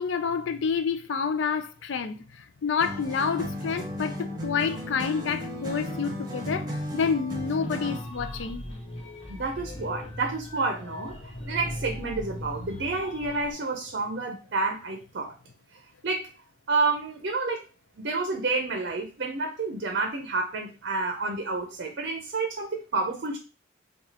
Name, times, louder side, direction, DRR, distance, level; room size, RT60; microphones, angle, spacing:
voice 1, 0.0-8.6, left 6 dB, 70° left, 0.4 m, -29 dB
sound 1, 2.8-8.1, equal, 20° right, 0.9 m, -34 dB
sound 2, 7.6-13.5, left 1 dB, 35° left, 0.8 m, -39 dB
voice 2, 9.3-11.1 11.5-15.3 16.0-16.3 16.7-17.6 18.0-23.4, right 3 dB, 55° right, 0.6 m, -29 dB
5.0 x 2.3 x 2.8 m
head